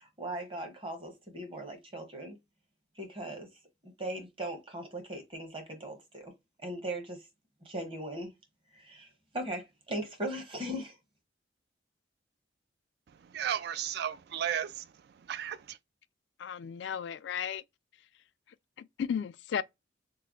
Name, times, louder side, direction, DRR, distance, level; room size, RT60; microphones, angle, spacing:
voice 1, 0.0-2.4 3.0-3.5 3.8-6.3 6.6-7.3 7.6-8.3 8.7-9.1 9.3-11.0, right 1 dB, 30° right, 1.1 m, -39 dB
voice 2, 13.2-14.9 15.3-15.8, right 9 dB, 60° right, 0.3 m, -34 dB
voice 3, 16.4-17.6 18.8-19.6, left 7 dB, 70° left, 0.3 m, -34 dB
3.3 x 2.0 x 3.6 m
head